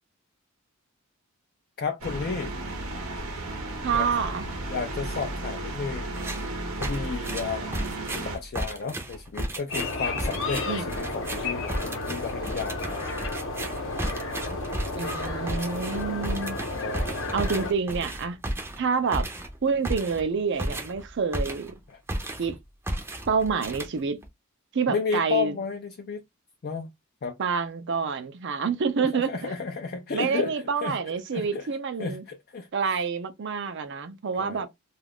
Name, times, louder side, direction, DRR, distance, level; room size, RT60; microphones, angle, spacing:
voice 1, 1.8-2.6 3.9-4.1 4.7-13.2 14.5-14.6 16.0-17.2 21.9-22.0 24.9-26.2 26.6-26.9 27.2-27.4 29.0-30.5 30.8-31.7 32.0-33.0 34.4-34.7, left 5 dB, 45° left, 0.4 m, -33 dB
sound 1, 2.0-8.4, right 2 dB, 75° right, 0.8 m, -34 dB
voice 2, 3.8-4.4 10.7-10.9 15.0-16.6 17.3-18.4 18.8-19.3 19.6-21.7 22.4-22.5 23.3-24.2 24.7-25.6 27.4-29.6 30.1-32.2 32.7-34.7, right 5 dB, 55° right, 0.5 m, -27 dB
sound 2, 6.1-6.5 6.8-21.8 22.1-22.6 22.9-24.3, right 1 dB, 10° right, 0.5 m, -34 dB
sound 3, 9.7-17.7, left 3 dB, 65° left, 0.8 m, -32 dB
2.4 x 2.3 x 3.4 m
head